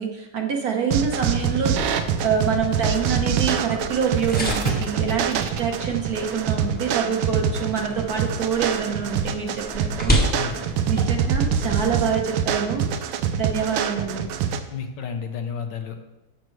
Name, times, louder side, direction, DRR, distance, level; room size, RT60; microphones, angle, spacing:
voice 1, 0.0-10.2 10.9-14.3, right 6 dB, 55° right, 2 dB, 1.3 m, -26 dB
sound 1, 0.9-14.6, right 7 dB, 90° right, 1.5 m, -25 dB
sound 2, 1.3-11.8, equal, 5° left, 1.0 m, -31 dB
voice 2, 10.3-10.7 14.7-16.2, left 6 dB, 65° left, 6 dB, 1.3 m, -32 dB
12.0 x 7.4 x 3.2 m, 1.0 s
omnidirectional pair, 2.2 m